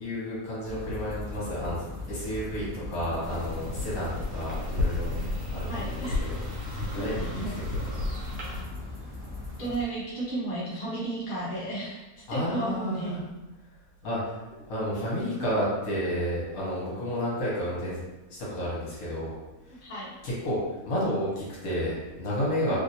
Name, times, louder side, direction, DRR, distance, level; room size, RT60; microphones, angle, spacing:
voice 1, 0.0-1.8 2.1-5.1 5.5-8.0 12.3-13.2 14.0-18.0 18.4-19.3 20.2-22.8, equal, 60° left, -7 dB, 1.4 m, -31 dB
sound 1, 0.6-9.8, left 2 dB, 10° right, 0.6 m, -39 dB
sound 2, 3.2-8.6, left 2 dB, 80° right, 1.4 m, -32 dB
voice 2, 5.7-6.3 6.9-7.5 9.6-13.2 19.8-20.1 22.7-22.8, right 2 dB, 45° left, -7 dB, 0.8 m, -33 dB
3.2 x 2.6 x 2.7 m, 1.1 s
omnidirectional pair, 1.8 m